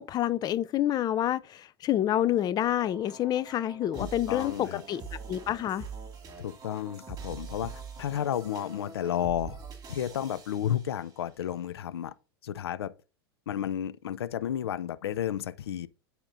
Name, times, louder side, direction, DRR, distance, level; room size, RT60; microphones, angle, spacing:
voice 1, 0.0-5.0 5.3-5.9, left 12 dB, 30° left, 0.4 m, -28 dB
sound 1, 2.1-11.3, right 5 dB, 30° right, 2.2 m, -45 dB
voice 2, 4.0-4.8 6.4-9.6 9.9-12.1 12.4-12.9 13.5-15.9, left 10 dB, 85° left, 0.4 m, -32 dB
13.0 x 4.3 x 2.6 m
hypercardioid pair, 95°, 13 cm